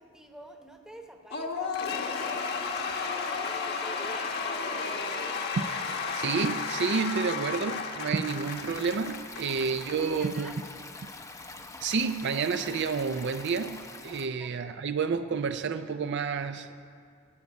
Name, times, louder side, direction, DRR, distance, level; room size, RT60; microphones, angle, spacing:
voice 1, 0.0-2.6 3.1-4.4 9.5-10.6 14.2-14.8, equal, 5° right, 3 dB, 1.0 m, -48 dB
Cheering / Applause / Crowd, 1.3-10.0, left 4 dB, 50° left, 1.1 m, -33 dB
voice 2, 6.1-10.6 11.8-16.8, right 5 dB, 55° right, 9 dB, 0.4 m, -30 dB
Stream, 8.3-14.3, left 3 dB, 15° left, 0.6 m, -45 dB
13.5 x 9.1 x 8.2 m, 2.2 s
head